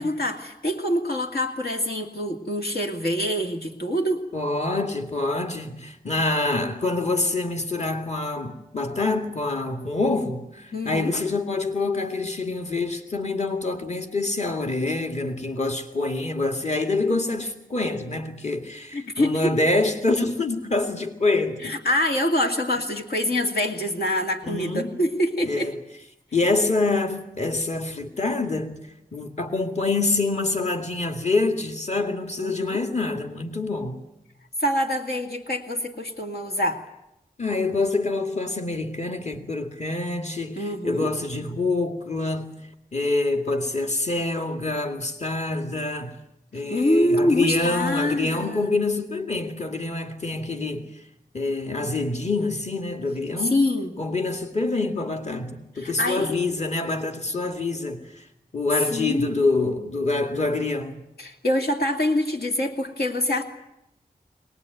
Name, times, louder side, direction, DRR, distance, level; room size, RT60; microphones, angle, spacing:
voice 1, 0.0-4.3 10.7-11.1 18.9-19.4 21.6-25.7 32.4-32.8 34.6-36.8 40.6-41.1 46.7-48.7 53.4-53.9 55.8-56.3 58.9-59.4 61.2-63.4, left 1 dB, 80° left, 2.5 m, -25 dB
voice 2, 4.3-21.8 24.4-25.0 25.4-25.8 26.3-28.8 29.1-34.0 37.4-42.5 42.9-46.2 46.5-50.9 51.3-53.6 54.0-58.3 58.5-61.0, left 3 dB, 45° left, 2.3 m, -26 dB
22.5 x 20.0 x 9.3 m
wide cardioid pair, 70°, 16 cm